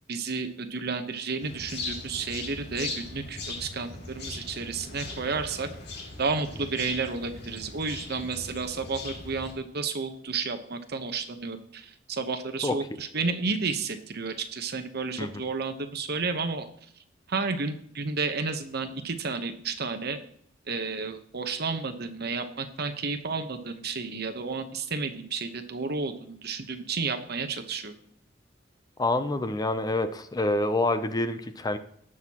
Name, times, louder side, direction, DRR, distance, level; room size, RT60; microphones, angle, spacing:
voice 1, 0.1-5.7 6.2-16.7 17.3-20.2 20.7-27.9, right 4 dB, 60° right, 8 dB, 1.0 m, -31 dB
sound 1, 1.4-9.5, left 3 dB, 65° left, 2.6 m, -39 dB
voice 2, 29.0-31.8, left 2 dB, 20° left, 10 dB, 0.5 m, -27 dB
18.5 x 6.3 x 2.9 m, 0.68 s
head